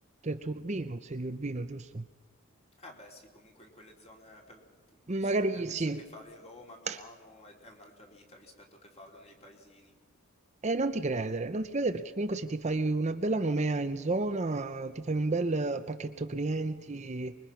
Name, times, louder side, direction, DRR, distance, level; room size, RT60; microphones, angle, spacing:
voice 1, 0.2-2.0 5.1-6.0 6.9-7.0 10.6-17.4, right 2 dB, 30° right, 0.7 m, -31 dB
voice 2, 2.8-9.9, left 1 dB, 30° left, 3.5 m, -53 dB
25.0 x 22.0 x 5.9 m
head